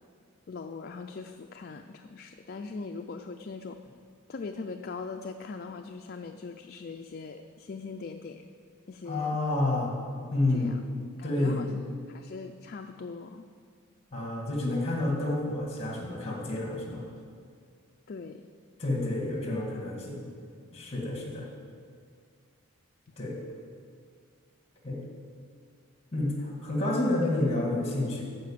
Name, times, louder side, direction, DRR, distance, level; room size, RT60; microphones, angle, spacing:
voice 1, 0.5-3.8 4.3-8.4 8.9-9.4 10.5-10.8 11.2-11.8 12.1-13.5 18.1-18.4, left 4 dB, 45° left, 5 dB, 0.4 m, -41 dB
voice 2, 9.1-10.8 11.2-11.8 14.1-17.0 18.8-20.3 20.7-21.5 23.2-23.4 24.8-25.0 26.1-28.2, left 2 dB, 30° left, -2 dB, 2.1 m, -29 dB
13.5 x 5.1 x 7.4 m, 2.2 s
head